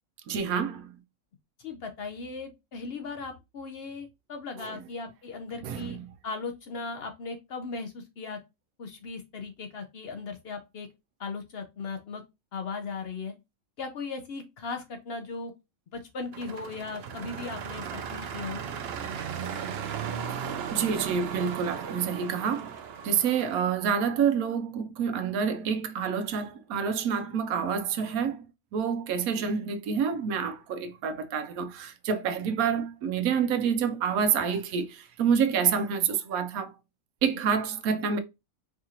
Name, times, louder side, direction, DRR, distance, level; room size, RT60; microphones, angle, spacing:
voice 1, 0.3-0.9 5.6-6.0 20.3-22.7 23.0-28.5 28.7-36.7 37.2-38.2, right 7 dB, 90° right, 1.1 m, -28 dB
voice 2, 1.6-6.0 6.2-8.4 8.8-10.9 11.2-12.2 12.5-13.3 13.8-15.5 15.9-18.6, left 4 dB, 60° left, 0.7 m, -37 dB
sound 1, 16.3-23.6, right 7 dB, 65° right, 0.7 m, -36 dB
4.8 x 2.9 x 2.4 m
omnidirectional pair, 1.5 m